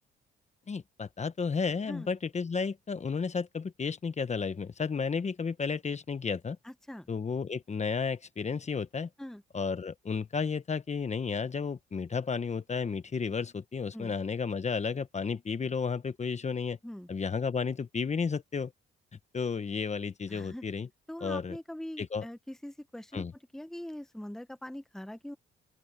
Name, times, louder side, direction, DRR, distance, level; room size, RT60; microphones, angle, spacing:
voice 1, 0.7-6.6 7.1-9.1 9.5-16.8 17.1-18.7 19.3-20.9 21.2-21.6 22.0-22.2 23.1-23.3, left 5 dB, 35° left, 1.2 m, -32 dB
voice 2, 6.6-7.1 9.2-9.4 13.9-14.1 16.8-17.1 20.3-20.6 21.1-23.3 23.5-25.4, left 1 dB, ahead, 1.1 m, -42 dB
open air
cardioid pair, 80°, 21 cm